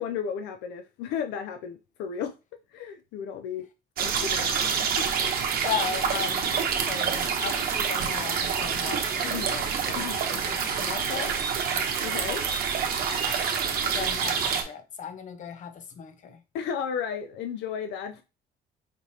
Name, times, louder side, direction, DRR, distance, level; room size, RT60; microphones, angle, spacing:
voice 1, 0.0-2.3 2.7-3.7 4.0-5.1 9.2-9.5 10.0-10.2 12.0-12.4 16.5-18.2, left 7 dB, 85° left, 0.5 m, -34 dB
sound 1, 4.0-14.6, right 6 dB, 60° right, 0.9 m, -27 dB
voice 2, 5.6-11.4 13.8-16.4, left 7 dB, 50° left, 0.8 m, -36 dB
5.1 x 3.0 x 2.7 m
cardioid pair, 110°, 17 cm